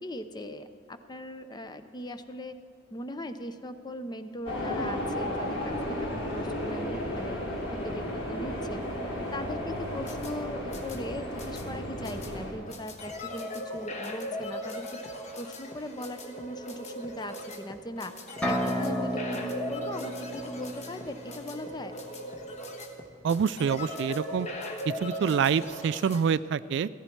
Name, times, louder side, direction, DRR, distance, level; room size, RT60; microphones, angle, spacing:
voice 1, 0.0-2.5 2.9-7.4 7.7-8.8 9.3-15.0 15.4-18.1 18.5-21.9, left 1 dB, 20° left, 10 dB, 0.6 m, -39 dB
sound 1, 4.5-12.5, left 1 dB, 60° left, 4.2 m, -33 dB
sound 2, 9.8-26.2, left 1 dB, 35° left, 1.4 m, -39 dB
sound 3, 18.4-22.2, equal, 5° left, 1.1 m, -33 dB
voice 2, 23.2-24.5 24.9-26.9, right 7 dB, 65° right, 16 dB, 0.3 m, -26 dB
15.5 x 14.5 x 4.5 m, 2.3 s
head